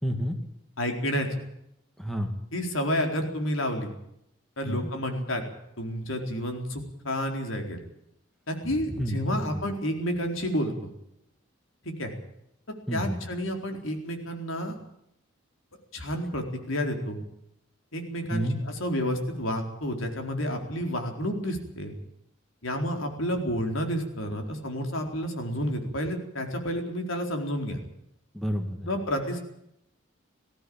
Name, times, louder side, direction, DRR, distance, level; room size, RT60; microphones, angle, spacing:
voice 1, 0.0-0.4 2.0-2.3 4.7-4.9 8.6-9.6 12.9-13.3 18.3-18.6 28.3-28.9, equal, ahead, 4 dB, 2.2 m, -30 dB
voice 2, 0.8-1.4 2.5-3.9 4.6-5.4 5.8-7.8 8.5-10.7 11.8-12.1 12.9-14.8 15.9-17.2 17.9-21.9 22.6-27.8 28.9-29.4, equal, 80° left, 4 dB, 4.3 m, -30 dB
20.0 x 15.5 x 8.8 m, 0.77 s
head